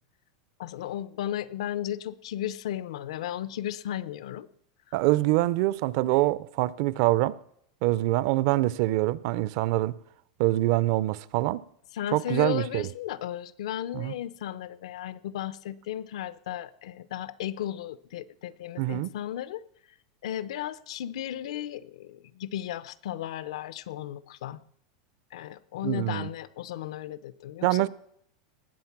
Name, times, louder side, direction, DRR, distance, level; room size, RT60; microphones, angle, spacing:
voice 1, 0.6-4.5 11.9-19.6 20.2-24.6 25.3-27.9, left 11 dB, 75° left, 0.6 m, -35 dB
voice 2, 4.9-7.4 7.8-10.0 10.4-11.6 12.1-12.9 13.9-14.1 18.8-19.1 25.8-26.3 27.6-27.9, right 17 dB, 45° right, 0.4 m, -25 dB
19.5 x 7.3 x 5.9 m
supercardioid pair, 175°, 3 cm